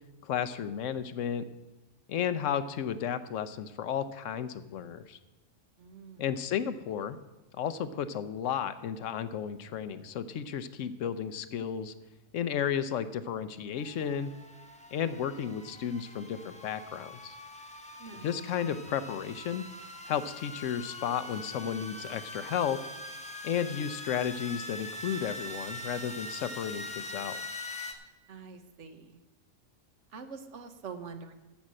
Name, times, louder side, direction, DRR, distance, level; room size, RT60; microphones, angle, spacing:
voice 1, 0.2-1.4 2.1-5.2 6.2-7.2 7.5-11.9 12.3-14.3 14.9-17.3 18.2-19.6 20.1-22.8 23.4-27.4, left 8 dB, 75° left, 13 dB, 1.0 m, -33 dB
voice 2, 5.8-6.3 18.0-18.3 28.3-29.2 30.1-31.3, right 5 dB, 65° right, 8 dB, 1.3 m, -45 dB
sound 1, 13.8-27.9, left 1 dB, 5° left, 0.8 m, -43 dB
13.0 x 5.5 x 7.5 m, 1.1 s
omnidirectional pair, 1.3 m